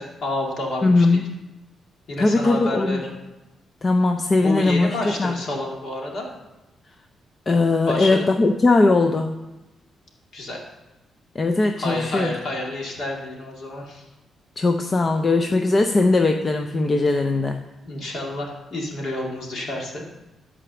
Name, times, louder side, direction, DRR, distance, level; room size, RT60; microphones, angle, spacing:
voice 1, 0.0-1.1 2.1-3.1 4.4-6.3 7.9-8.4 10.3-10.6 11.8-14.1 17.9-20.0, left 1 dB, 45° left, -1 dB, 2.3 m, -29 dB
voice 2, 0.8-1.3 2.2-3.0 3.8-5.4 7.5-9.5 11.3-12.3 14.6-17.7, left 3 dB, 25° left, 5 dB, 0.5 m, -20 dB
12.5 x 5.0 x 6.9 m, 1.0 s
cardioid pair, 175°, 0 cm